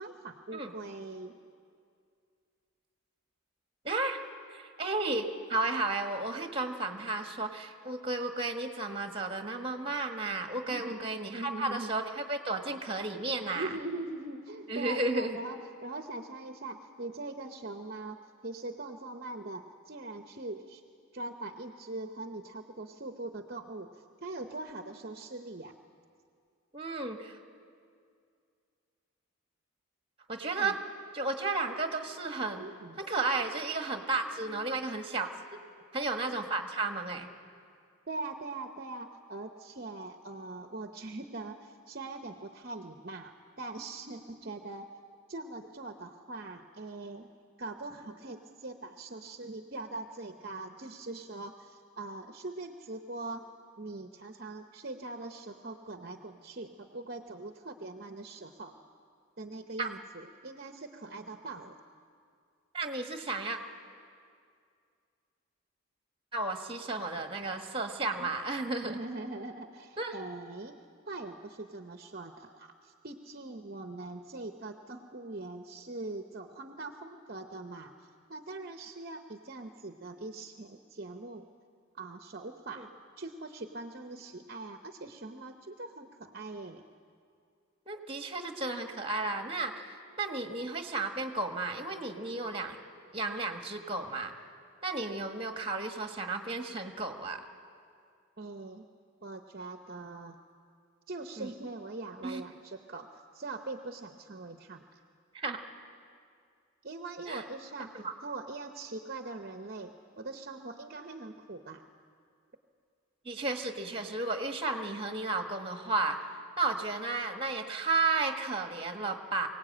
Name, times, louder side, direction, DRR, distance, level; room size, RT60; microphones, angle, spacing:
voice 1, 0.0-1.4 10.7-11.9 13.5-18.2 18.4-20.8 21.1-25.8 30.4-30.8 32.6-33.0 34.2-34.7 38.1-44.9 45.3-47.3 47.6-53.5 53.8-58.8 59.4-61.8 68.2-68.3 68.8-70.7 71.1-77.9 78.3-81.5 82.0-82.9 83.2-86.8 98.4-98.9 99.2-100.4 101.1-103.1 103.3-105.0 106.8-107.9 108.2-111.8, right 2 dB, 45° right, 6 dB, 0.8 m, -42 dB
voice 2, 3.8-4.2 4.5-13.7 14.7-15.4 26.7-27.4 30.3-30.8 31.1-32.6 33.0-35.3 35.9-37.3 59.8-59.9 62.7-63.6 66.3-69.0 70.0-70.1 82.8-82.9 87.9-92.8 93.1-94.3 94.8-97.4 101.4-101.5 102.2-102.4 105.3-105.6 107.3-107.4 107.9-108.1 113.2-116.2 116.6-119.5, right 3 dB, 25° right, 5 dB, 1.4 m, -33 dB
23.5 x 18.0 x 8.7 m, 2.3 s
head